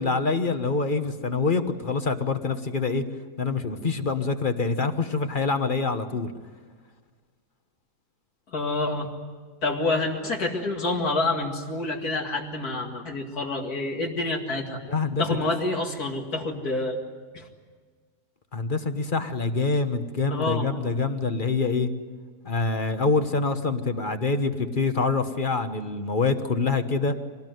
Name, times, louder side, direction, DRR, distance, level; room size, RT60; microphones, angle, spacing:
voice 1, 0.0-3.0 3.4-6.3 14.8-15.4 18.5-21.9 22.4-27.1, left 4 dB, 35° left, 8 dB, 1.3 m, -25 dB
voice 2, 8.5-9.1 9.6-14.8 15.2-17.0 17.3-17.5 20.3-20.7, left 2 dB, 75° left, 0 dB, 2.7 m, -27 dB
25.5 x 19.5 x 9.3 m, 1.5 s
omnidirectional pair, 1.6 m